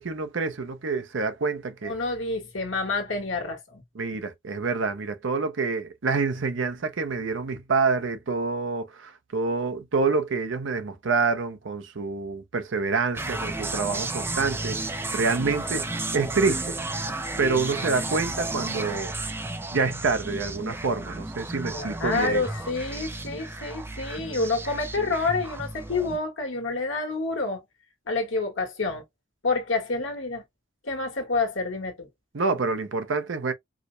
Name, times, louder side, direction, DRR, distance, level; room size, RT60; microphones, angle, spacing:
voice 1, 0.0-1.9 4.0-15.9 16.1-16.8 17.4-19.1 19.7-22.4 32.3-33.5, right 4 dB, 80° right, 0.7 m, -27 dB
voice 2, 1.8-3.8 21.7-27.6 28.1-29.0 29.4-30.4 30.8-32.1, left 3 dB, 85° left, 1.3 m, -28 dB
sound 1, 13.1-26.2, right 2 dB, 10° right, 0.3 m, -33 dB
4.8 x 2.1 x 2.6 m
head